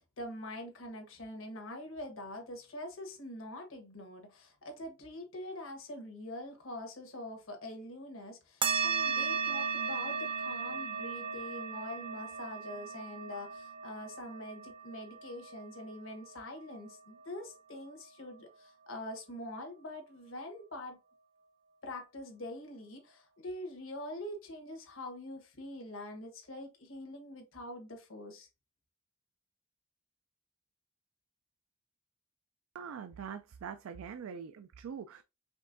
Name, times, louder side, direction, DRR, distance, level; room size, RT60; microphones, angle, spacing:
voice 1, 0.0-21.0 21.8-28.5, left 1 dB, 80° left, 1.3 m, -44 dB
sound 1, 8.6-17.5, right 6 dB, 25° right, 0.5 m, -36 dB
voice 2, 32.7-35.2, right 7 dB, 90° right, 0.4 m, -43 dB
5.2 x 3.5 x 2.6 m
head